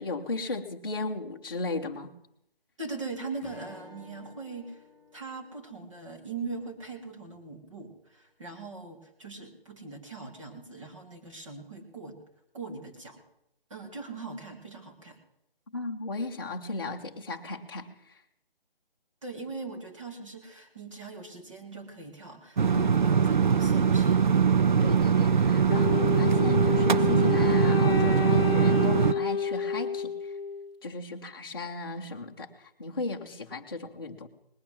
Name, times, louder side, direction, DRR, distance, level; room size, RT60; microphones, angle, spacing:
voice 1, 0.0-2.1 15.7-18.2 22.7-22.9 24.8-30.3 30.8-34.3, left 2 dB, 25° left, -2 dB, 0.9 m, -35 dB
voice 2, 2.8-4.8 5.1-12.2 12.5-13.2 13.7-15.2 19.2-24.2, right 3 dB, 35° right, 3 dB, 2.2 m, -41 dB
Strum, 3.4-8.0, left 3 dB, 5° right, 3.7 m, -54 dB
sound 1, 22.6-29.1, right 6 dB, 55° right, 0.5 m, -22 dB
Wind instrument woodwind instrument, 25.7-30.7, left 6 dB, 90° left, 0.9 m, -29 dB
19.5 x 9.0 x 7.6 m, 0.79 s
hypercardioid pair, 175°, 29 cm